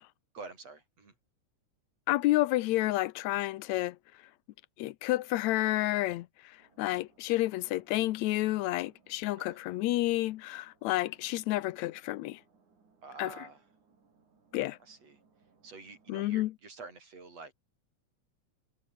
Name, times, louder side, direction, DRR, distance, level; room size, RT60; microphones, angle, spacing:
voice 1, 0.3-1.1 9.4-9.6 13.0-13.6 14.8-15.2 15.6-17.5, right 4 dB, 55° right, 7.7 m, -48 dB
voice 2, 2.1-4.0 4.8-6.3 6.8-12.4 13.2-13.3 14.5-14.8 16.1-16.5, left 17 dB, 75° left, 1.9 m, -30 dB
sound 1, 6.6-16.5, right 4 dB, 85° right, 6.6 m, -67 dB
omnidirectional pair, 3.4 m